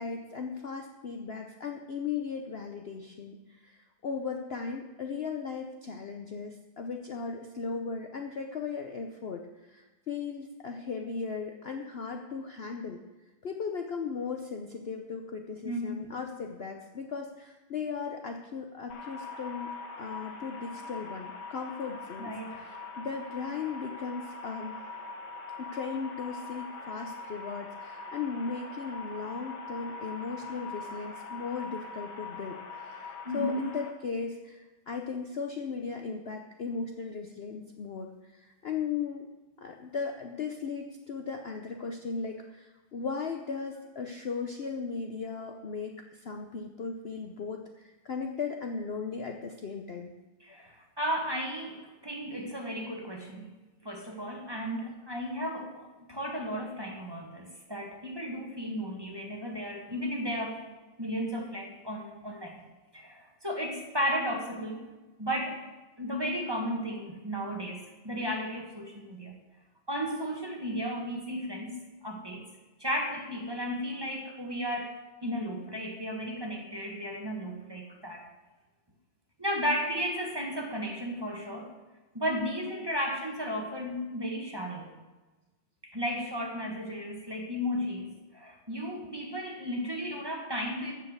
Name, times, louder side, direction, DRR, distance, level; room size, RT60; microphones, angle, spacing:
voice 1, 0.0-13.0 13.4-19.7 20.0-24.8 25.7-39.3 39.6-50.1, left 5 dB, 65° left, 3 dB, 0.6 m, -37 dB
voice 2, 15.6-16.1 22.2-22.6 33.2-33.6 50.4-53.5 53.8-60.6 61.0-62.6 62.9-64.8 65.2-65.7 66.0-69.4 69.9-71.8 72.0-72.5 72.8-78.3 79.4-81.7 82.1-84.9 85.8-90.9, equal, 15° right, 1 dB, 1.3 m, -34 dB
sound 1, 18.9-33.9, left 3 dB, 85° left, 1.9 m, -42 dB
13.5 x 5.2 x 7.9 m, 1.2 s
omnidirectional pair, 2.1 m